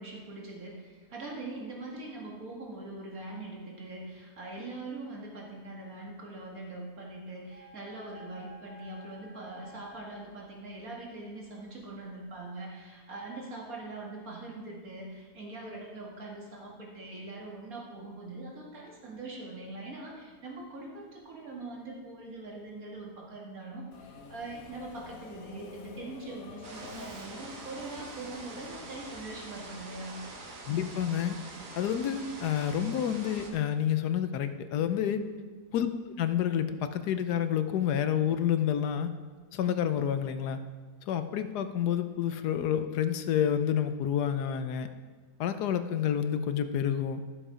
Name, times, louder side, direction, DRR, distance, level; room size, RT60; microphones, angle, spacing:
voice 1, 0.0-30.2 35.1-35.4, right 2 dB, 60° right, -2 dB, 2.5 m, -42 dB
sound 1, 7.5-10.2, equal, 20° right, 0.5 m, -51 dB
Subway metro underground, 23.9-30.1, left 5 dB, 65° left, 1.2 m, -49 dB
sound 2, 26.6-33.5, right 3 dB, 85° right, 1.9 m, -45 dB
voice 2, 30.6-31.4 31.7-35.2 35.7-35.9 36.2-39.1 39.5-40.6 41.1-44.9 45.4-47.2, left 9 dB, 85° left, 10 dB, 1.2 m, -29 dB
13.5 x 7.1 x 5.0 m, 1.4 s
omnidirectional pair, 1.7 m